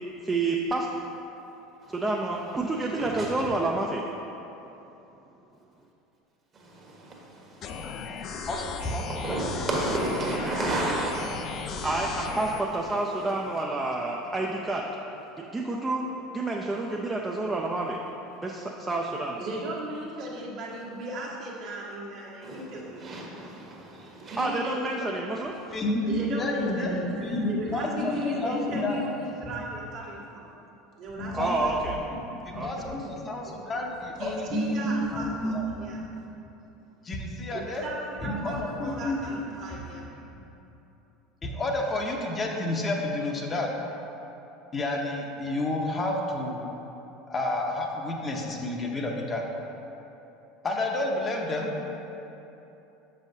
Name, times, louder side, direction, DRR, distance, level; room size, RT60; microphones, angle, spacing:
voice 1, 0.2-0.9 1.9-4.0 11.8-14.8 15.4-16.1 16.3-18.0 18.4-19.4 24.4-25.5 31.3-32.0 32.5-33.0, right 2 dB, 15° right, -1 dB, 0.5 m, -29 dB
voice 2, 3.0-3.5 6.5-8.5 9.0-11.9 22.4-24.4, right 2 dB, 35° right, -2 dB, 1.3 m, -33 dB
sound 1, 7.6-12.6, left 5 dB, 45° left, 0.4 m, -36 dB
voice 3, 8.9-9.7 10.4-10.5 25.7-29.5 31.2-31.5 32.1-36.1 37.0-37.9 38.2-39.4 40.4-40.5 41.4-43.7 44.7-46.6 47.3-49.4 50.6-51.7, left 1 dB, 30° left, 0 dB, 0.7 m, -30 dB
voice 4, 19.4-23.1 24.2-24.8 26.0-30.5 31.0-31.5 33.4-33.5 34.2-36.0 37.5-40.2, right 1 dB, 55° right, -5 dB, 1.4 m, -37 dB
7.0 x 5.5 x 2.7 m, 3.0 s
hypercardioid pair, 75°, 0 cm